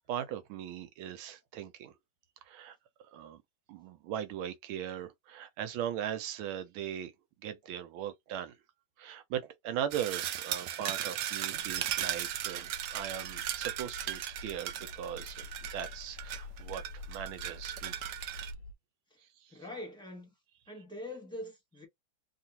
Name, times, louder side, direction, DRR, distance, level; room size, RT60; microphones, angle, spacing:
voice 1, 0.1-1.9 2.4-2.8 3.1-3.4 3.7-7.1 7.4-8.5 9.0-17.9 19.4-19.6, right 10 dB, 90° right, 1.5 m, -39 dB
sound 1, 9.9-18.5, right 11 dB, 75° right, 1.0 m, -37 dB
sound 2, 11.5-18.7, left 3 dB, 80° left, 0.8 m, -48 dB
voice 2, 19.5-20.3 20.7-21.9, left 1 dB, 5° left, 0.8 m, -43 dB
3.5 x 2.4 x 2.8 m
omnidirectional pair, 2.2 m